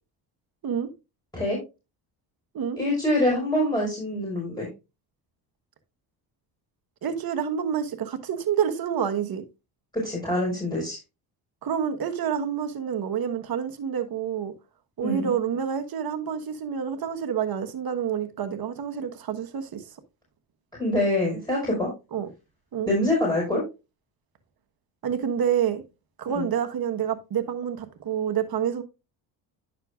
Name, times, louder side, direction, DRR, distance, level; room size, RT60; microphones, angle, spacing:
voice 1, 2.8-4.7 9.9-11.0 15.0-15.3 20.8-21.9 22.9-23.6 26.3-26.5, left 1 dB, 10° left, 5.1 m, -25 dB
voice 2, 7.0-9.4 11.6-14.5 15.0-19.9 22.1-22.3 22.7-22.9 25.0-25.8 26.2-28.8, right 8 dB, 50° right, 1.4 m, -28 dB
10.5 x 6.6 x 2.4 m
supercardioid pair, 75°, 46 cm